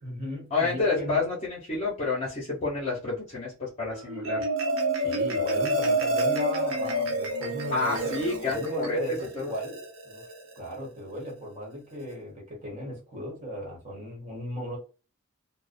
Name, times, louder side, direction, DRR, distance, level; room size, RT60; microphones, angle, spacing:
voice 1, 0.0-1.3 5.0-10.3 10.5-14.8, equal, 30° right, -2 dB, 1.2 m, -36 dB
voice 2, 0.5-4.4 7.7-9.0 9.4-9.5, left 3 dB, 35° left, -5 dB, 0.9 m, -29 dB
Marimba xylophone, 4.0-10.6, right 1 dB, 80° right, 0.8 m, -29 dB
2.6 x 2.0 x 2.5 m, 0.33 s
head